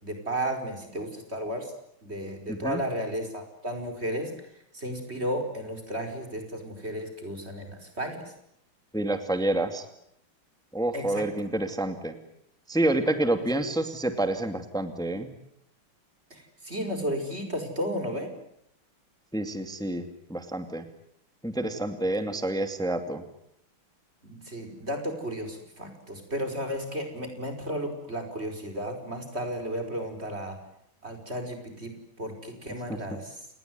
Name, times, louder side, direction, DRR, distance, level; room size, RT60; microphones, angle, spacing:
voice 1, 0.0-1.7 2.0-4.3 4.7-8.2 10.9-11.3 16.3-18.3 24.2-30.6 31.0-33.4, equal, 30° right, 5 dB, 5.3 m, -33 dB
voice 2, 2.5-2.8 8.9-9.8 10.7-12.1 12.7-15.3 19.3-20.9 21.4-23.2 32.9-33.0, right 1 dB, ahead, 8 dB, 2.2 m, -28 dB
30.0 x 19.5 x 9.4 m, 0.76 s
omnidirectional pair, 2.4 m